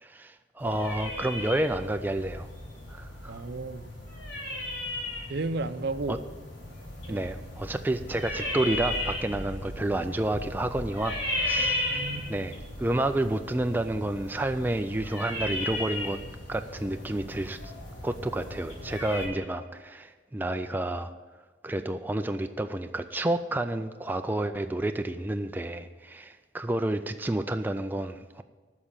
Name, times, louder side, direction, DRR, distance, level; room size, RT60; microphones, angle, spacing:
voice 1, 0.0-2.5 2.9-3.4 6.1-6.2 7.1-12.0 12.3-16.2 16.5-17.7 18.0-21.1 21.6-28.4, right 1 dB, 10° right, 7 dB, 0.3 m, -30 dB
sound 1, 0.6-19.3, left 1 dB, 85° left, 3.4 m, -35 dB
voice 2, 3.3-3.9 5.3-6.2 7.1-7.2 11.6-12.2, right 2 dB, 60° right, 11 dB, 0.6 m, -33 dB
9.7 x 6.2 x 8.7 m, 1.4 s
head